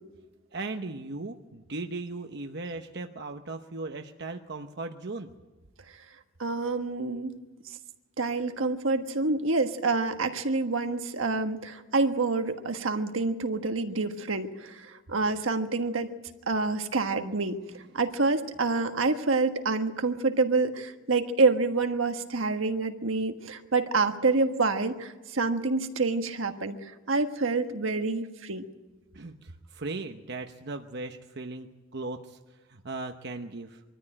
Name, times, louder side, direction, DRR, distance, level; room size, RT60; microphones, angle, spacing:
voice 1, 0.5-5.3 29.1-33.8, right 3 dB, 55° right, 5 dB, 0.9 m, -38 dB
voice 2, 6.4-7.3 8.2-16.1 16.5-17.6 17.9-28.6, right 3 dB, 80° right, 7 dB, 1.4 m, -27 dB
23.5 x 14.0 x 8.9 m, 1.2 s
head